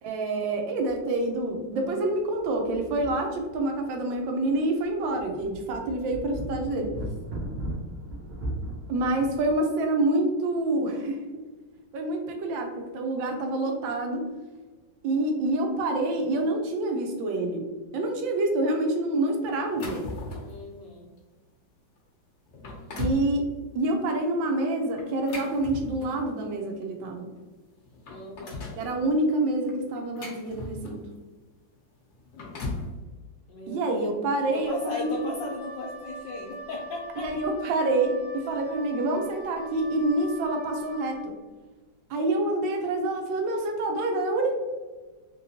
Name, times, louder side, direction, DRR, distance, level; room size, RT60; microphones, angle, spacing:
voice 1, 0.0-6.9 8.9-11.4 11.9-14.3 15.0-17.7 17.9-20.1 23.0-23.5 23.7-27.3 28.8-31.0 33.7-35.3 37.2-41.3 42.1-44.5, right 2 dB, 80° right, 2 dB, 1.3 m, -27 dB
sound 1, 0.9-1.0 1.4-1.5 2.4-3.8 4.2-4.3 4.8-9.6, right 1 dB, 60° right, 1.2 m, -37 dB
sound 2, 19.6-20.6 21.2-21.3 22.0-22.1 22.5-23.3 25.0-26.3 27.4-27.5 27.8-28.8 29.7-31.1 32.1-32.9, left 2 dB, 60° left, 0.7 m, -37 dB
voice 2, 20.4-21.1 28.1-28.7 33.5-34.3 34.5-37.3, left 3 dB, 75° left, -2 dB, 1.2 m, -37 dB
Wind instrument woodwind instrument, 34.6-41.3, right 1 dB, 45° right, 1.5 m, -43 dB
3.4 x 2.9 x 2.7 m, 1.3 s
omnidirectional pair, 2.1 m